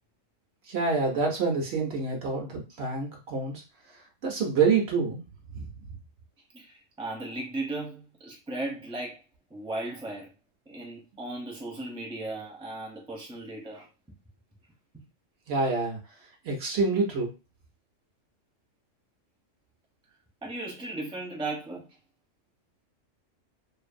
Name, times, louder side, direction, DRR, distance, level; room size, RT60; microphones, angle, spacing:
voice 1, 0.7-3.6 4.2-5.2 5.5-5.7 15.5-16.0 16.4-17.3, right 4 dB, 60° right, 0.8 m, -27 dB
voice 2, 6.5-9.2 9.5-10.3 10.7-13.9 20.4-21.9, right 2 dB, 5° right, 0.5 m, -36 dB
2.5 x 2.5 x 2.5 m
omnidirectional pair, 1.3 m